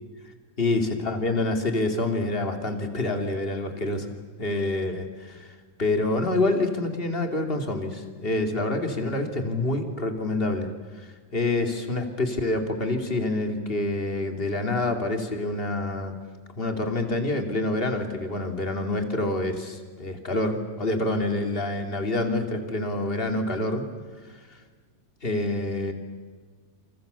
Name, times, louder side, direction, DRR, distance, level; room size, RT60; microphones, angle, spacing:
voice 1, 0.6-4.1 4.4-10.7 10.9-16.1 16.6-23.9 24.3-24.6 25.2-25.9, left 2 dB, 20° left, 6 dB, 2.8 m, -27 dB
29.5 x 28.0 x 7.0 m, 1.5 s
omnidirectional pair, 3.6 m